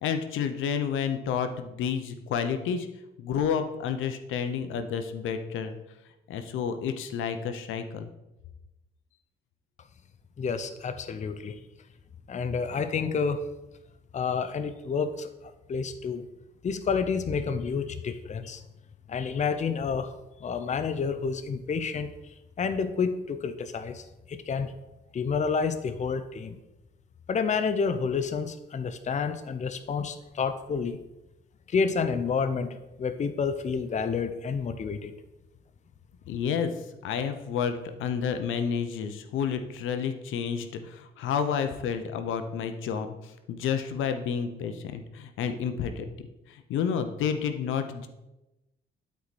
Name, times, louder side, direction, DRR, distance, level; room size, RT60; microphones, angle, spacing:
voice 1, 0.0-2.9 3.2-5.8 6.3-8.1 36.3-36.7 37.0-46.1 46.5-48.1, left 7 dB, 85° left, 8 dB, 0.8 m, -30 dB
voice 2, 10.4-11.6 12.3-13.4 14.1-15.3 15.7-16.3 16.6-18.6 19.1-20.1 20.4-22.1 22.6-24.7 25.1-26.6 27.3-31.0 31.7-35.1, left 5 dB, 35° left, 10 dB, 0.6 m, -29 dB
11.5 x 4.7 x 4.2 m, 0.96 s
cardioid pair, 90°, 20 cm